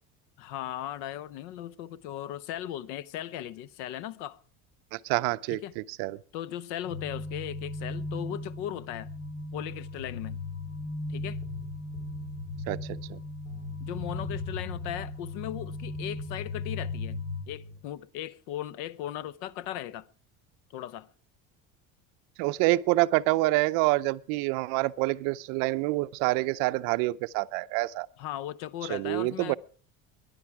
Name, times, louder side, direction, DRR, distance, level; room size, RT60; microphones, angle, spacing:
voice 1, 0.4-4.4 5.5-5.7 6.3-9.1 9.5-10.4 11.1-11.4 13.8-20.1 20.7-21.1 28.2-29.6, left 12 dB, 85° left, 0.9 m, -37 dB
voice 2, 4.9-6.2 12.7-12.8 13.1-13.2 22.4-28.1 28.9-29.6, right 19 dB, 65° right, 0.6 m, -27 dB
sound 1, 6.8-17.4, left 2 dB, 60° left, 4.2 m, -37 dB
sound 2, 9.9-11.0 11.4-13.1 13.5-15.2 15.4-17.8, left 3 dB, 45° left, 2.9 m, -45 dB
21.0 x 10.5 x 4.7 m
cardioid pair, 175°, 36 cm